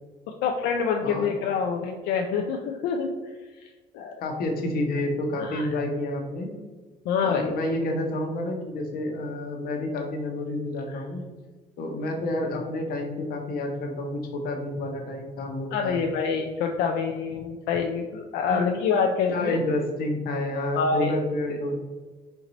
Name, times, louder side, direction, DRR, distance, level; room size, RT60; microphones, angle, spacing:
voice 1, 0.4-3.1 3.9-4.1 5.4-5.8 7.1-7.5 10.9-11.0 15.7-19.6 20.8-21.1, left 5 dB, 90° left, 2 dB, 0.4 m, -26 dB
voice 2, 4.2-6.5 7.2-11.2 11.8-16.0 18.5-18.7 19.3-21.8, left 1 dB, 60° left, 2 dB, 1.0 m, -29 dB
4.5 x 2.6 x 4.0 m, 1.3 s
cardioid pair, 110°, 17 cm